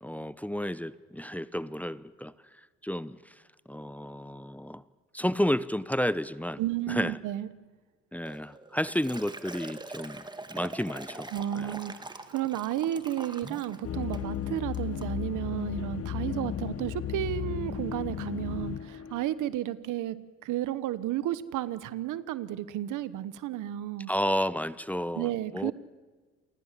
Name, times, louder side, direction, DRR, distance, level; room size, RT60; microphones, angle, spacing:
voice 1, 0.0-2.3 2.8-3.3 3.7-4.8 5.1-6.6 6.9-7.1 8.1-10.2 10.5-11.7 24.1-25.7, equal, 5° left, 17 dB, 0.7 m, -31 dB
voice 2, 6.6-7.5 11.3-20.2 20.4-24.1 25.1-25.7, right 13 dB, 85° right, 16 dB, 1.1 m, -32 dB
Liquid, 8.3-13.8 14.1-14.4 14.7-15.1, right 2 dB, 15° right, 1.8 m, -43 dB
sound 1, 13.8-19.3, left 10 dB, 50° left, 1.0 m, -34 dB
28.0 x 19.5 x 7.5 m, 1.4 s
cardioid pair, 90°, 30 cm